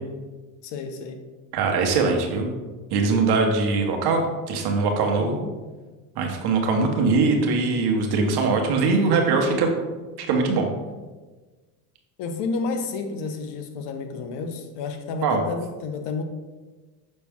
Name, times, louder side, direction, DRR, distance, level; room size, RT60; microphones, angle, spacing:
voice 1, 0.6-1.3 5.2-5.5 12.2-16.2, left 4 dB, 65° left, 7 dB, 0.9 m, -31 dB
voice 2, 1.5-2.5 2.9-5.4 6.2-9.7 10.2-10.7 15.2-15.4, right 4 dB, 55° right, 2 dB, 1.3 m, -22 dB
6.5 x 4.2 x 3.6 m, 1.3 s
supercardioid pair, 105°, 45 cm